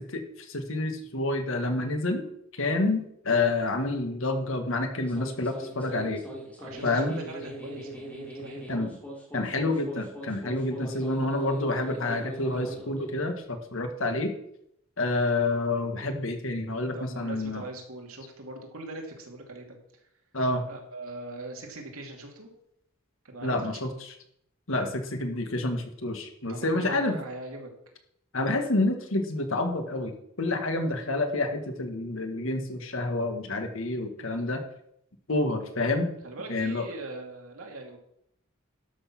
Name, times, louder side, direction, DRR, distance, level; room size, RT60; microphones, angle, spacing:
voice 1, 0.0-2.2 2.5-6.2 6.8-7.2 8.7-8.9 9.3-14.3 15.0-17.6 20.3-20.6 23.4-24.1 24.7-27.2 28.3-34.6 35.3-36.1 36.5-36.9, left 2 dB, 65° left, 6 dB, 1.6 m, -28 dB
sound 1, 4.9-13.4, equal, 5° left, 3.0 m, -41 dB
voice 2, 6.6-8.8 16.9-19.8 20.7-22.5 23.2-23.6 23.8-23.9 26.5-27.7 36.2-38.0, right 2 dB, 80° right, 2 dB, 2.6 m, -41 dB
12.0 x 6.4 x 5.9 m, 0.74 s
head